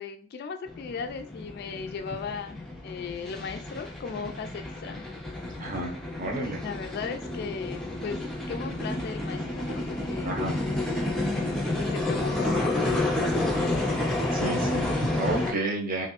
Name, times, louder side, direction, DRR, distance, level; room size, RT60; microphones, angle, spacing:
voice 1, 0.0-2.6 2.8-5.0 6.6-10.3 11.8-13.8, left 5 dB, 50° left, 7 dB, 0.3 m, -37 dB
sound 1, 0.7-15.5, left 2 dB, ahead, 0.5 m, -30 dB
voice 2, 5.6-5.9 6.2-6.6 10.2-10.6 14.3-16.1, right 2 dB, 45° right, 1 dB, 0.7 m, -31 dB
2.9 x 2.6 x 2.9 m, 0.38 s
head